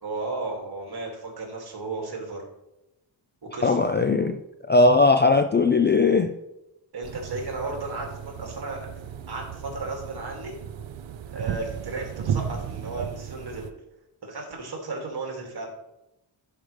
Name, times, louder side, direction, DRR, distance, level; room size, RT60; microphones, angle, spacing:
voice 1, 0.0-2.4 3.4-3.8 6.9-8.9 9.3-10.6 11.3-13.7 14.2-15.7, right 3 dB, 50° right, 2.4 m, -34 dB
voice 2, 3.6-4.4 4.7-6.3, left 3 dB, 25° left, 0.3 m, -19 dB
sound 1, 7.0-13.7, right 8 dB, 70° right, 0.7 m, -35 dB
11.5 x 5.0 x 3.3 m
wide cardioid pair, 95°, 48 cm